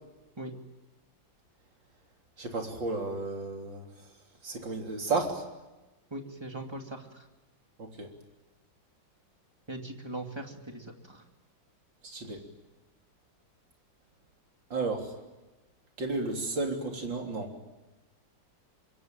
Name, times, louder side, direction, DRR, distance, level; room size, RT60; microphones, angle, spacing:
voice 1, 2.4-3.9 4.4-5.5 7.8-8.1 12.0-12.4 14.7-15.2 16.0-17.7, right 3 dB, 70° right, 2 dB, 4.2 m, -33 dB
voice 2, 6.1-7.3 9.7-11.2, right 1 dB, 15° right, 3 dB, 2.5 m, -40 dB
25.5 x 23.0 x 9.1 m, 1.1 s
omnidirectional pair, 2.1 m